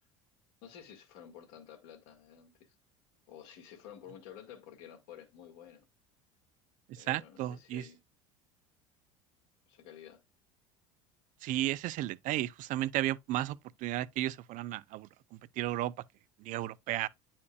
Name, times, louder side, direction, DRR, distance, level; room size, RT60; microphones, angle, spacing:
voice 1, 0.6-2.7 3.3-5.9 7.0-8.0 9.7-10.2, left 9 dB, 70° left, 1.9 m, -51 dB
voice 2, 6.9-7.8 11.4-15.9 16.4-17.1, right 15 dB, 55° right, 0.5 m, -34 dB
9.5 x 4.3 x 2.3 m
hypercardioid pair, 85°, 16 cm